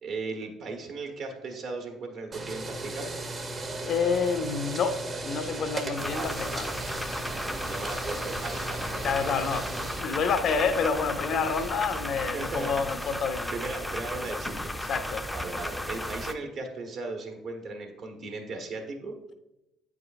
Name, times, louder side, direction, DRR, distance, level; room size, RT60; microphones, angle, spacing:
voice 1, 0.0-3.1 6.1-6.6 7.3-9.4 10.3-10.4 11.5-11.7 12.2-13.1 13.5-14.7 15.3-19.1, right 3 dB, 60° right, 1.2 m, -37 dB
sound 1, 2.3-10.0, right 2 dB, 35° right, 0.8 m, -36 dB
voice 2, 3.9-5.0 5.2-6.7 7.9-8.3 9.0-13.5 14.9-15.3, left 5 dB, 55° left, 0.6 m, -28 dB
sound 2, 6.0-16.3, left 1 dB, 5° left, 0.5 m, -35 dB
8.6 x 4.8 x 2.5 m
hypercardioid pair, 60°, 0 cm